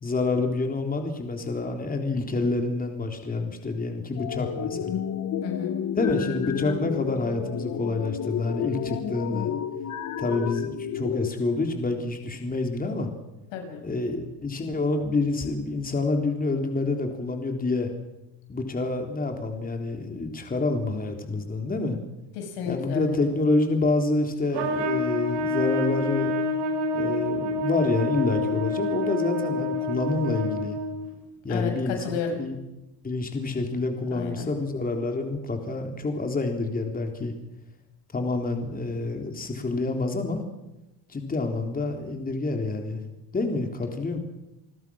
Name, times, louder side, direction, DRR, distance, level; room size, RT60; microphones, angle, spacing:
voice 1, 0.0-5.0 5.9-9.5 10.2-13.1 13.8-17.9 18.5-22.0 22.7-26.3 26.9-30.8 31.4-32.6 33.0-37.3 38.1-40.4 41.1-43.0 43.3-44.2, left 3 dB, 20° left, 4 dB, 3.7 m, -27 dB
sound 1, 4.2-11.3, left 9 dB, 45° left, 1.8 m, -31 dB
voice 2, 5.4-5.7 13.5-13.8 22.4-23.2 31.5-32.4 34.1-34.5, left 6 dB, 90° left, 4 dB, 7.2 m, -32 dB
Trumpet, 24.5-31.1, left 2 dB, 70° right, 7.5 m, -27 dB
29.5 x 20.0 x 6.4 m, 0.96 s
cardioid pair, 120°, 43 cm